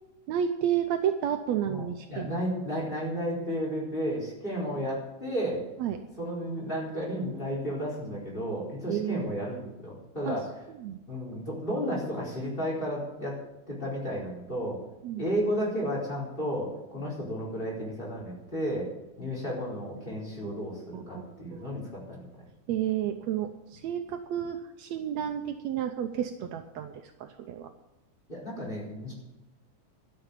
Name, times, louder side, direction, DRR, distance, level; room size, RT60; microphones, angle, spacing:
voice 1, 0.3-2.3 5.8-6.0 8.9-9.2 10.3-10.4 10.7-11.0 15.0-15.3 20.4-20.6 20.9-21.7 22.7-27.7, right 9 dB, 75° right, 7 dB, 1.9 m, -31 dB
voice 2, 1.7-5.6 6.2-10.5 11.1-13.4 13.7-14.8 15.2-18.9 19.2-22.3 28.3-29.1, equal, 15° left, -4 dB, 4.4 m, -33 dB
12.5 x 6.9 x 9.0 m, 0.95 s
omnidirectional pair, 3.3 m